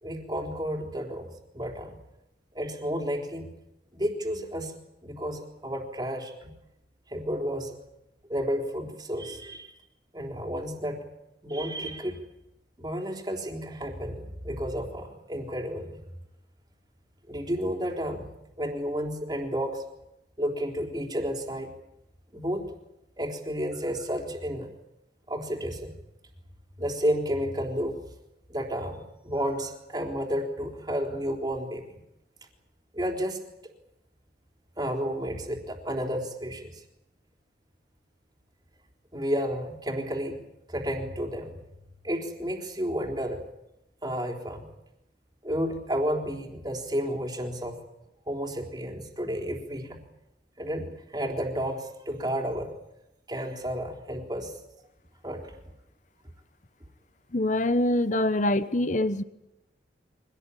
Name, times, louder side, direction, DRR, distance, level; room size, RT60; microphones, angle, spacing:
voice 1, 0.0-1.9 2.5-3.5 3.9-4.7 5.0-6.5 7.1-7.8 8.3-9.7 10.1-11.0 11.4-12.2 12.8-16.0 17.3-18.3 18.6-19.8 20.4-21.7 22.3-22.7 23.2-24.7 25.3-25.9 26.8-28.0 28.5-31.8 32.9-33.4 34.8-36.8 39.1-40.4 40.7-41.5 42.0-43.4 44.0-44.7 45.4-47.8 48.3-50.0 50.6-52.7 53.3-54.5 55.2-55.6 58.1-58.2, equal, 25° right, 3 dB, 3.9 m, -31 dB
voice 2, 57.3-59.2, left 1 dB, 45° left, 13 dB, 1.1 m, -24 dB
24.5 x 18.0 x 10.0 m, 0.87 s
head